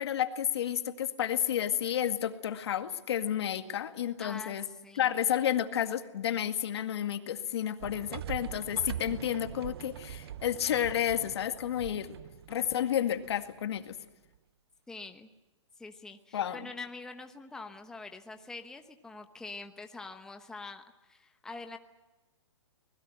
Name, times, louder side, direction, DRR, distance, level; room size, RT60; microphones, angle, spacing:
voice 1, 0.0-4.6 5.0-12.1 12.5-13.9 16.3-16.6, left 10 dB, 60° left, 8 dB, 2.0 m, -31 dB
voice 2, 4.2-5.1 14.9-15.3 15.8-21.8, left 3 dB, 5° left, 6 dB, 1.0 m, -45 dB
sound 1, 7.8-13.8, right 10 dB, 55° right, 0.7 m, -43 dB
25.0 x 20.5 x 7.8 m, 1.1 s
hypercardioid pair, 145°, 15 cm